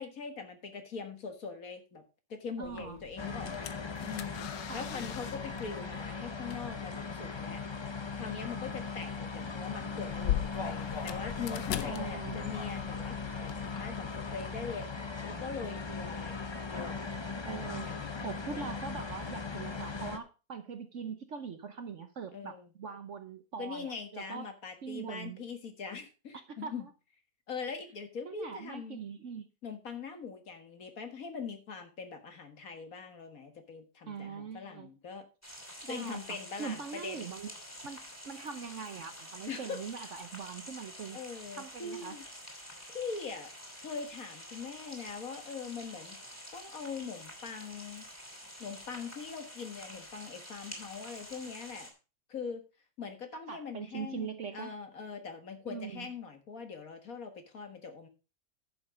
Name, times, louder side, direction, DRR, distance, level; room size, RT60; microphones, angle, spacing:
voice 1, 0.0-2.0 2.3-3.7 4.0-4.5 4.7-7.6 8.2-14.9 15.2-16.4 16.7-17.1 17.5-18.1 18.4-18.8 22.3-22.7 23.6-26.9 27.5-29.0 29.6-35.3 35.9-37.3 39.5-39.8 41.1-42.2 42.9-43.5 43.8-46.2 46.5-48.0 48.6-51.9 52.3-52.6 53.0-58.1, left 5 dB, 55° left, 6 dB, 1.9 m, -42 dB
sound 1, 2.6-13.8, left 12 dB, 90° left, 1.4 m, -41 dB
voice 2, 2.6-3.0 4.7-4.9 11.9-12.4 17.4-17.9 18.2-24.5 24.8-25.4 26.6-26.9 28.2-29.5 34.1-34.9 35.8-36.2 36.6-37.5 37.8-38.0 38.2-41.2 41.5-42.1 53.5-54.7 55.7-56.1, right 6 dB, 55° right, 9 dB, 1.0 m, -42 dB
sound 2, 3.2-20.2, left 4 dB, 30° left, 0.4 m, -38 dB
sound 3, 35.4-51.9, equal, 10° left, 2.7 m, -48 dB
10.5 x 6.5 x 5.1 m, 0.31 s
omnidirectional pair, 1.8 m